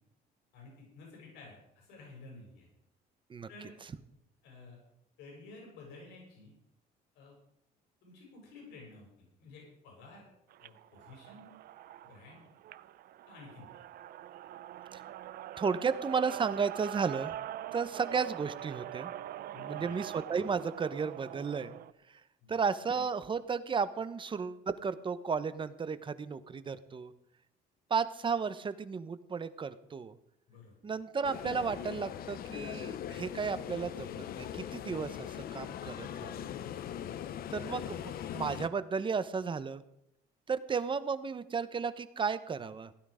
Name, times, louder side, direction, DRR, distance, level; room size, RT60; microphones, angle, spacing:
voice 1, 0.5-2.7 3.5-3.8 4.4-4.8 5.2-6.5 7.1-7.3 8.0-10.3 10.6-11.5 12.0-12.5 13.3-13.8 19.5-20.0 22.4-22.6 30.5-30.7, left 3 dB, 90° left, -1 dB, 6.8 m, -52 dB
sound 1, 10.5-21.9, right 12 dB, 65° right, 0.6 m, -43 dB
voice 2, 15.6-17.3 17.7-19.1 19.7-21.8 22.1-22.2 22.5-27.1 27.9-30.2 30.8-36.5 37.5-39.8 40.5-42.9, right 5 dB, 30° right, 13 dB, 1.0 m, -34 dB
sound 2, 31.2-38.7, left 10 dB, 60° left, 0.9 m, -41 dB
16.0 x 11.0 x 5.1 m, 0.82 s
cardioid pair, 110°, 17 cm